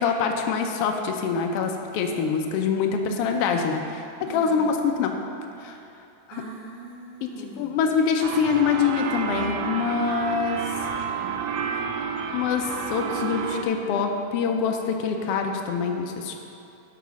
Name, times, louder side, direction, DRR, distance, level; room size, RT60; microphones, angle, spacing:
voice 1, 0.0-5.1 5.6-5.8 7.2-10.6 12.3-16.4, left 6 dB, 85° left, 3 dB, 1.3 m, -25 dB
voice 2, 4.3-4.6 5.7-5.8 6.3-7.8, right 3 dB, 60° right, -4 dB, 1.9 m, -42 dB
sound 1, 8.2-13.6, right 6 dB, 80° right, 1.9 m, -30 dB
9.1 x 4.7 x 6.1 m, 2.8 s
omnidirectional pair, 3.4 m